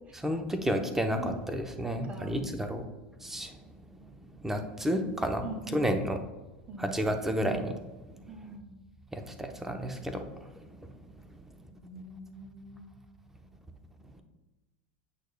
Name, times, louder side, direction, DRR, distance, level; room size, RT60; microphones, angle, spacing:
voice 1, 0.2-2.8 3.2-3.6 4.2-6.2 6.8-7.8 9.1-10.5 10.8-10.9, equal, 5° right, 5 dB, 0.8 m, -31 dB
voice 2, 2.0-2.4 5.4-5.9 6.7-6.9 8.3-8.7 11.7-13.0, right 2 dB, 25° right, 3 dB, 1.5 m, -43 dB
8.2 x 6.3 x 2.2 m, 1.1 s
hypercardioid pair, 105°, 5 cm